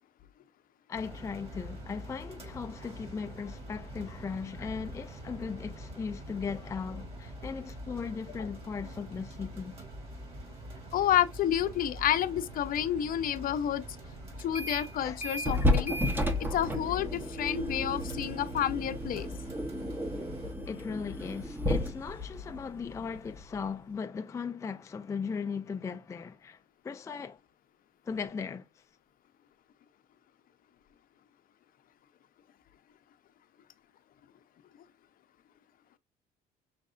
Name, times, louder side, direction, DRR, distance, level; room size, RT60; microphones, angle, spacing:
voice 1, 0.9-9.8 15.0-15.2 20.7-27.4 28.0-28.8, left 5 dB, 15° left, 0.4 m, -38 dB
sound 1, 0.9-20.5, right 1 dB, 35° right, 3.0 m, -45 dB
voice 2, 10.9-13.8 14.4-15.9 16.4-19.3, left 11 dB, 55° left, 0.7 m, -29 dB
sound 2, 14.4-14.9 15.2-23.7, left 1 dB, 10° right, 1.0 m, -32 dB
6.3 x 3.4 x 2.5 m
cardioid pair, 110°, 17 cm